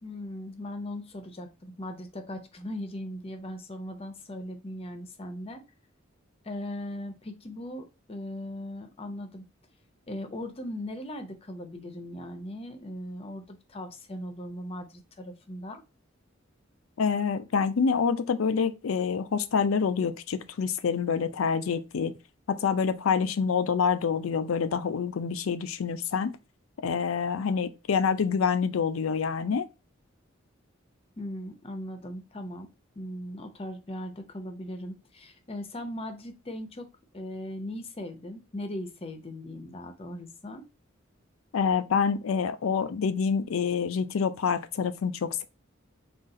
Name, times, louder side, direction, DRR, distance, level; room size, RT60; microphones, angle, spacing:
voice 1, 0.0-5.6 6.4-9.4 10.1-15.8 31.2-32.7 33.0-36.9 37.1-40.7, left 1 dB, 30° left, 0.6 m, -39 dB
voice 2, 17.0-22.1 22.5-26.3 26.8-29.7 41.5-45.4, left 6 dB, 85° left, 0.4 m, -27 dB
4.0 x 2.4 x 3.6 m
head